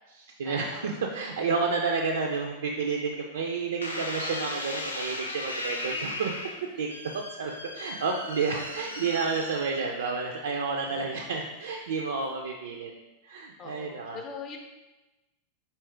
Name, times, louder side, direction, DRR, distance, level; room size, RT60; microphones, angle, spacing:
voice 1, 0.1-6.3 6.8-6.9 7.1-12.9 13.2-14.2, right 4 dB, 65° right, 1 dB, 0.3 m, -30 dB
sound 1, 3.8-10.2 10.9-11.3, left 2 dB, 80° left, 0.5 m, -37 dB
voice 2, 13.6-14.6, left 5 dB, 35° left, 3 dB, 0.6 m, -41 dB
4.4 x 2.9 x 3.3 m, 1.1 s
figure-of-eight pair, 90°, 0 cm